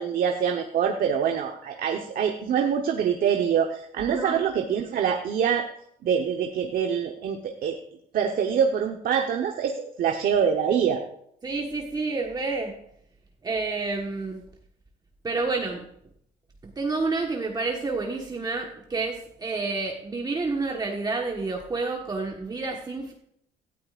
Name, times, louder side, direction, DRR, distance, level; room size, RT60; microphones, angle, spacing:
voice 1, 0.0-5.6 6.0-7.8 8.1-11.0, right 7 dB, 60° right, 3 dB, 1.1 m, -25 dB
voice 2, 4.1-4.4 11.4-12.8 13.4-14.5 15.2-15.9 16.6-23.1, right 3 dB, 25° right, 1 dB, 1.4 m, -29 dB
17.5 x 13.0 x 2.5 m, 0.70 s
cardioid pair, 110°, 17 cm